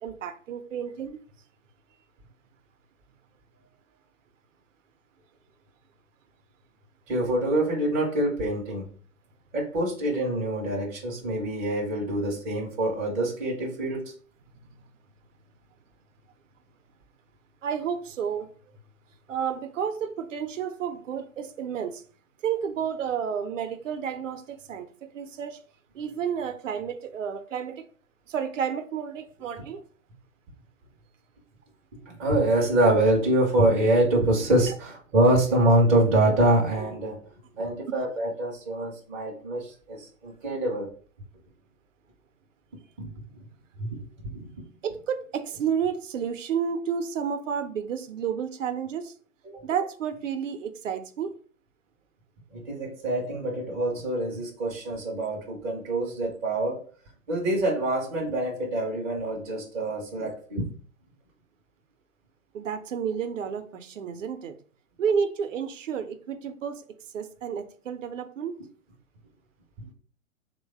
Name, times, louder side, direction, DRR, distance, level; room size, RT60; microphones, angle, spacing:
voice 1, 0.0-1.2 17.6-18.5 19.3-22.0 22.4-25.6 25.9-27.9 28.3-29.8 34.7-34.8 44.8-49.1 49.6-51.4 62.5-64.5 65.0-66.8 67.1-68.6, right 7 dB, 70° right, 0.6 m, -31 dB
voice 2, 7.1-8.9 9.5-14.1 32.1-37.2 37.6-40.9 43.0-43.1 43.8-44.0 44.3-44.5 49.5-49.6 52.5-56.8 57.3-60.6, right 1 dB, 15° right, 0.4 m, -25 dB
3.1 x 2.1 x 3.4 m
figure-of-eight pair, 115°, 40 cm